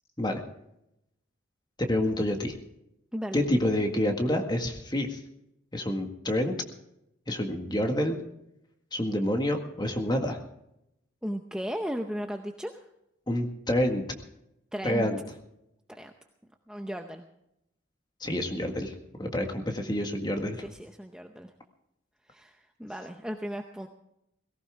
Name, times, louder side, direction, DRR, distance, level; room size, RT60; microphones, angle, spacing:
voice 1, 1.8-2.6 3.3-5.2 5.7-6.5 7.3-8.2 8.9-10.4 13.3-14.0 14.8-15.2 18.2-20.6, left 1 dB, 20° left, 4 dB, 1.8 m, -28 dB
voice 2, 3.1-3.4 11.2-12.8 14.7-15.1 15.9-16.1 16.7-17.3 20.6-21.5 22.3-23.9, equal, 5° right, 4 dB, 0.7 m, -36 dB
18.0 x 17.0 x 3.6 m, 0.82 s
head